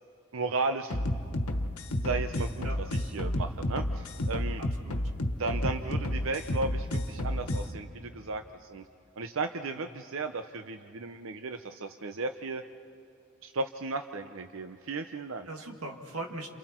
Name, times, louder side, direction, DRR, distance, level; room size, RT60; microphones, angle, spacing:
voice 1, 0.3-1.0 2.0-2.7 2.9-4.6 5.4-8.8 9.2-12.6 13.4-15.5, right 3 dB, 65° right, 8 dB, 0.7 m, -35 dB
sound 1, 0.9-7.7, left 1 dB, 90° left, 1.4 m, -31 dB
voice 2, 4.6-5.1 9.7-9.9 15.5-16.5, right 2 dB, 85° right, 2 dB, 2.3 m, -40 dB
29.5 x 28.0 x 4.5 m, 2.7 s
head